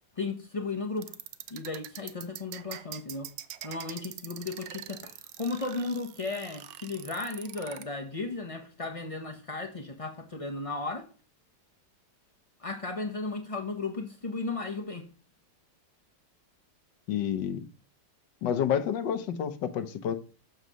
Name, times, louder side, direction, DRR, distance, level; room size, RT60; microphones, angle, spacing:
voice 1, 0.2-1.1 1.5-3.3 3.6-11.1 12.6-15.1, left 3 dB, 65° left, 0.3 m, -35 dB
sound 1, 1.0-7.8, right 11 dB, 80° right, 1.3 m, -43 dB
voice 2, 17.1-17.7 18.4-20.2, left 9 dB, 85° left, 1.5 m, -29 dB
6.7 x 4.0 x 6.2 m
omnidirectional pair, 1.9 m